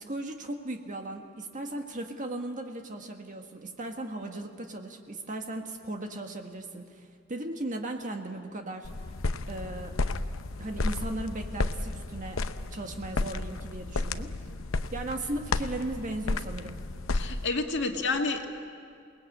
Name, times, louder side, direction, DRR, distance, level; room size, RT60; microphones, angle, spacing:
voice 1, 0.0-8.9 9.5-10.0 10.6-12.4 12.7-14.3 14.9-16.8, right 2 dB, 40° right, 4 dB, 1.6 m, -37 dB
sound 1, 8.8-17.5, left 3 dB, 85° left, 0.8 m, -32 dB
voice 2, 17.1-18.5, left 3 dB, 65° left, 3 dB, 2.1 m, -29 dB
28.5 x 20.0 x 8.6 m, 2.3 s
head